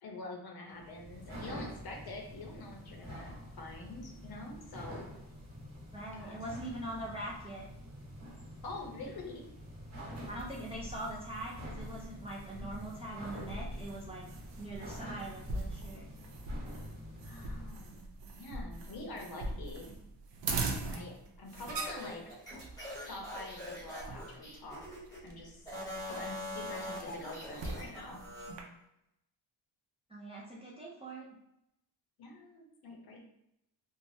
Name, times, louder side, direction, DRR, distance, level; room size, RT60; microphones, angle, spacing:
voice 1, 0.0-5.0 6.1-6.4 8.6-9.4 17.2-18.1 18.3-20.0 20.9-22.2 23.0-24.8 25.2-25.6 26.1-28.2 32.2-33.2, left 2 dB, 55° left, 1 dB, 0.7 m, -46 dB
sound 1, 0.7-17.9, equal, 40° right, 1.1 m, -47 dB
voice 2, 5.9-7.7 10.3-14.3 14.6-16.0 30.1-31.2, right 1 dB, 15° right, -5 dB, 0.3 m, -42 dB
sound 2, 10.1-28.6, right 3 dB, 75° right, 0.6 m, -43 dB
sound 3, 21.7-25.2 25.6-28.5, left 1 dB, 10° left, 0.9 m, -43 dB
3.2 x 2.1 x 2.6 m, 0.81 s
wide cardioid pair, 160°, 44 cm